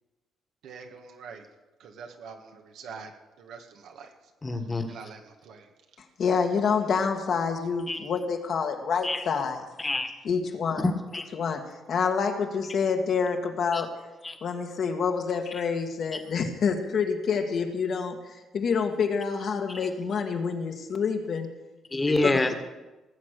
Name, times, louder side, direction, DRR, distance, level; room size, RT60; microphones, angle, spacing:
voice 1, 0.6-1.4 1.8-3.1 3.4-4.1 4.9-5.7, right 5 dB, 80° right, 4 dB, 1.9 m, -44 dB
voice 2, 4.4-4.9 7.9-8.0 9.0-9.2 9.8-10.1 10.8-11.3 13.7-13.8 14.2-14.4 19.7-19.8 21.9-22.5, left 2 dB, 20° left, 8 dB, 1.7 m, -27 dB
voice 3, 6.2-9.6 10.2-10.8 11.3-11.6 11.9-13.9 14.4-18.2 18.5-21.5 22.2-22.5, left 5 dB, 60° left, 4 dB, 1.9 m, -27 dB
19.0 x 7.5 x 6.7 m, 1.1 s
cardioid pair, 90°, 0 cm